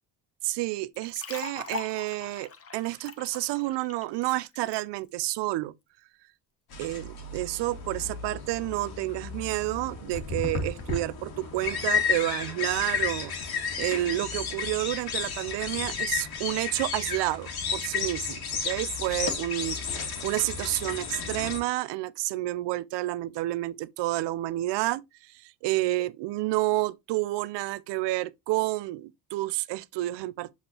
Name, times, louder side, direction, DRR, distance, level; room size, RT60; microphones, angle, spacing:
voice 1, 0.4-5.7 6.8-13.3 13.8-30.5, right 18 dB, 60° right, 0.6 m, -30 dB
sound 1, 0.9-4.8, left 5 dB, 30° left, 1.1 m, -41 dB
sound 2, 6.7-21.6, left 6 dB, 50° left, 2.1 m, -32 dB
6.6 x 5.3 x 2.8 m
hypercardioid pair, 60°, 47 cm